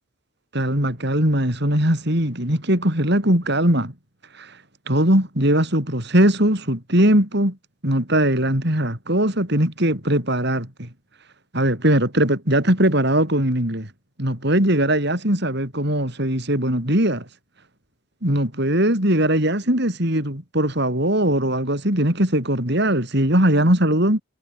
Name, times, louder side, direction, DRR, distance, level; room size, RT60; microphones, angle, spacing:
voice 1, 0.5-3.9 4.4-4.5 4.9-7.6 7.8-10.9 11.5-13.9 14.2-17.2 18.2-24.2, right 1 dB, 55° right, 6.7 m, -20 dB
head